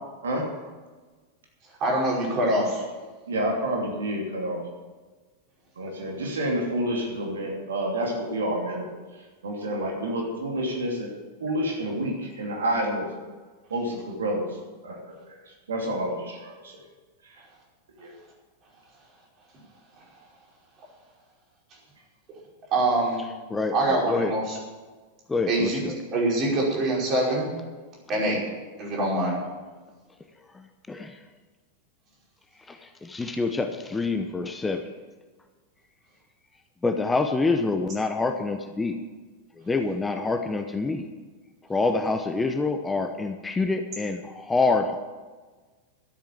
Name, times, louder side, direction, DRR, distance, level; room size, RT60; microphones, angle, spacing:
voice 1, 1.8-2.8 22.7-23.2 23.7-24.6 25.5-25.8 26.1-27.5 28.1-28.4 28.8-29.4, right 1 dB, 35° right, -3 dB, 5.2 m, -24 dB
voice 2, 3.3-4.6 5.8-8.9 9.4-11.1 11.4-13.0 13.7-14.5 14.8-16.7 17.2-17.4 18.0-18.1, right 1 dB, 65° right, -1 dB, 2.8 m, -29 dB
voice 3, 25.3-25.9 30.9-31.1 32.7-32.8 33.0-34.8 36.8-39.0 39.7-41.1 41.7-45.0, left 3 dB, 10° left, 6 dB, 0.8 m, -26 dB
12.5 x 8.6 x 7.5 m, 1.4 s
figure-of-eight pair, 90°, 0 cm